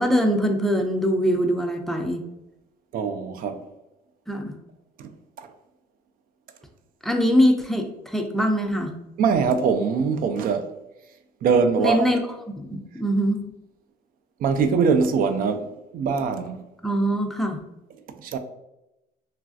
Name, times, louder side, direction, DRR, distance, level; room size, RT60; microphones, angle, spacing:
voice 1, 0.0-2.2 4.3-4.5 7.0-9.0 11.8-12.2 12.6-13.4 16.8-17.6, equal, ahead, 0.4 m, -22 dB
voice 2, 2.9-3.6 5.0-5.1 5.4-5.5 9.2-10.7 11.4-12.1 14.4-16.6 18.2-18.4, right 5 dB, 60° right, 0.4 m, -22 dB
3.1 x 2.5 x 2.4 m
cardioid pair, 110°, 17 cm